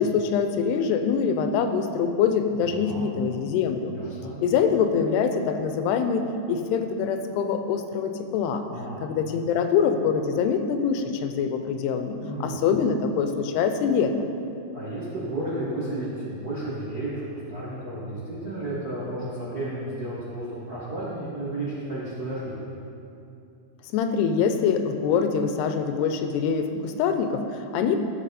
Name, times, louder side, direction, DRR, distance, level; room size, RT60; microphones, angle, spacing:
voice 1, 0.0-3.9 4.4-8.6 9.0-14.3 23.9-28.0, left 6 dB, 90° left, 7 dB, 2.7 m, -24 dB
voice 2, 2.6-3.0 3.9-4.4 8.7-9.0 12.2-12.6 14.7-22.6, right 1 dB, 60° right, -10 dB, 0.9 m, -33 dB
14.5 x 5.8 x 4.2 m, 2.7 s
omnidirectional pair, 4.6 m